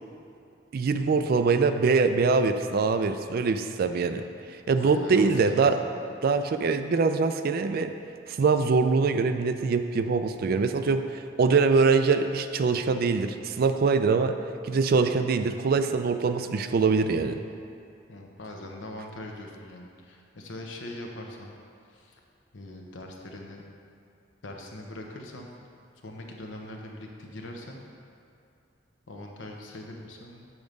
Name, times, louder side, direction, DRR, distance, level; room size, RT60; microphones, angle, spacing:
voice 1, 0.7-4.2 4.5-5.8 6.2-7.9 8.3-14.4 14.6-17.4, right 4 dB, 50° right, 9 dB, 0.4 m, -23 dB
voice 2, 4.8-6.0 18.1-21.5 21.9-22.2 22.5-23.6 24.4-25.5 26.0-27.8 29.1-30.5, left 1 dB, 80° left, 1 dB, 0.9 m, -41 dB
7.2 x 4.8 x 5.2 m, 2.5 s
head